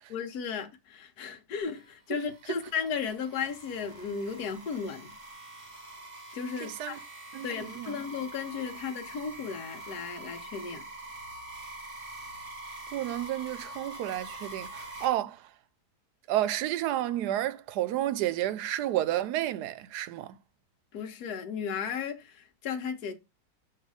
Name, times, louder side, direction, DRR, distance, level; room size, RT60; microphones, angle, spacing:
voice 1, 0.1-5.2 6.3-7.0 7.4-10.9 20.9-23.1, left 6 dB, 75° left, 1.5 m, -35 dB
sound 1, 1.6-15.1, right 2 dB, 50° right, 2.4 m, -45 dB
voice 2, 6.6-7.0 7.3-8.0 12.9-15.5 16.3-20.4, right 13 dB, 90° right, 1.1 m, -31 dB
6.6 x 3.3 x 4.8 m
omnidirectional pair, 1.7 m